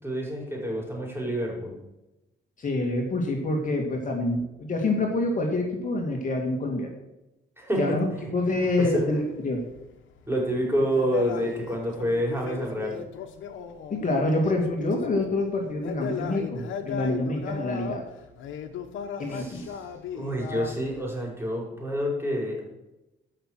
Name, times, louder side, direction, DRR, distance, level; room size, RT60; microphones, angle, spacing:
voice 1, 0.0-1.7 7.6-7.8 8.1-8.3 8.8-9.1 10.3-13.0 19.3-19.7 20.1-22.6, equal, 10° right, -1 dB, 5.0 m, -28 dB
voice 2, 2.6-6.9 7.8-9.6 13.9-18.0 19.2-19.6, left 2 dB, 40° left, 1 dB, 2.3 m, -27 dB
sound 1, 9.2-15.4 15.7-21.1, left 7 dB, 80° left, 1.3 m, -37 dB
14.0 x 6.0 x 6.5 m, 0.97 s
cardioid pair, 90°, 20 cm